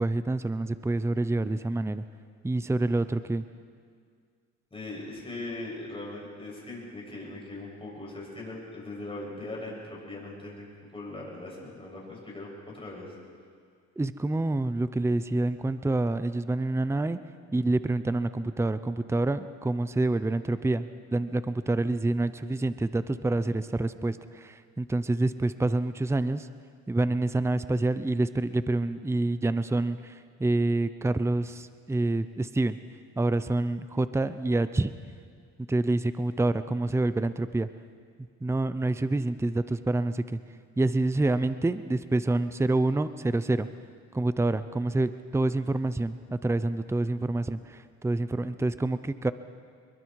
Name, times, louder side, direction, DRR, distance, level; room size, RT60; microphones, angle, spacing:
voice 1, 0.0-2.0 2.4-3.4 14.0-17.2 17.5-26.5 26.9-32.8 33.2-34.9 35.7-37.7 38.4-40.4 40.8-43.7 44.1-49.3, right 2 dB, 10° right, 13 dB, 0.7 m, -27 dB
voice 2, 4.7-13.1, left 2 dB, 20° left, -4 dB, 7.9 m, -40 dB
25.0 x 22.0 x 4.8 m, 2.1 s
cardioid pair, 90°, 30 cm